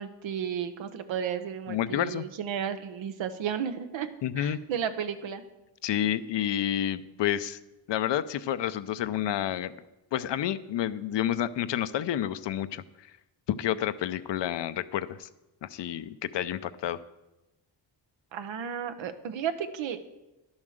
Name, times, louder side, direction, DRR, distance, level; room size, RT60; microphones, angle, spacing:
voice 1, 0.0-4.1 4.4-5.4 18.3-20.0, right 8 dB, 80° right, 9 dB, 1.0 m, -33 dB
voice 2, 1.7-2.3 4.2-4.6 5.8-7.6 7.9-9.7 10.1-13.1 13.5-15.3 15.6-17.0, left 11 dB, 70° left, 14 dB, 0.7 m, -29 dB
11.0 x 7.3 x 6.5 m, 1.0 s
cardioid pair, 90°, 45 cm